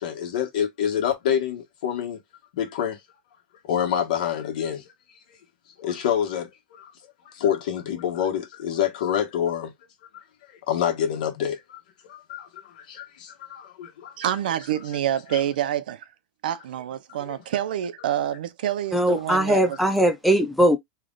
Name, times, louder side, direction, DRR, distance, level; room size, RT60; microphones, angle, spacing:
voice 1, 0.0-2.2 2.5-3.0 3.7-4.9 5.8-6.9 7.2-9.7 10.1-10.2 10.5-11.8 12.1-14.3 15.3-15.4 17.3-17.4, left 9 dB, 65° left, 1.4 m, -27 dB
voice 2, 14.2-16.1 16.4-19.8, right 11 dB, 90° right, 0.6 m, -27 dB
voice 3, 18.9-20.8, right 1 dB, ahead, 0.5 m, -20 dB
3.3 x 2.4 x 3.8 m
supercardioid pair, 170°, 5 cm